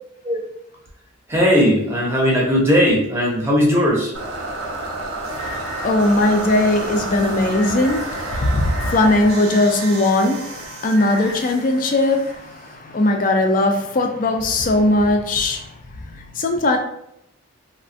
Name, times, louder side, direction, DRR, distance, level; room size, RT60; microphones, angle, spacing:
voice 1, 1.3-4.1, equal, 10° right, 0.6 m, -17 dB
sound 1, 4.1-13.2, right 1 dB, 85° right, 0.6 m, -30 dB
voice 2, 5.3-15.7 16.1-16.8, left 2 dB, 40° left, 0.3 m, -19 dB
3.2 x 2.1 x 2.5 m
head